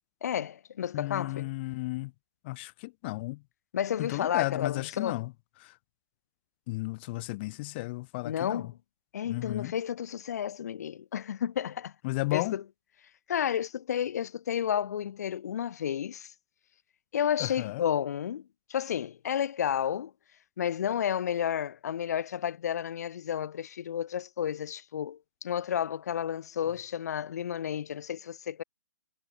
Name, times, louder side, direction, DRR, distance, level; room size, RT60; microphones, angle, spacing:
voice 1, 0.2-1.5 3.7-5.3 8.2-8.8 9.1-11.9 12.3-12.6 13.3-16.3 17.1-20.1 20.6-28.6, left 9 dB, 55° left, 3.5 m, -31 dB
voice 2, 0.9-2.1 2.4-3.4 4.0-5.3 5.6-5.7 6.7-8.7 9.2-9.7 12.0-12.6 17.4-17.8, left 22 dB, 35° left, 3.0 m, -33 dB
hypercardioid pair, 145°, 10 cm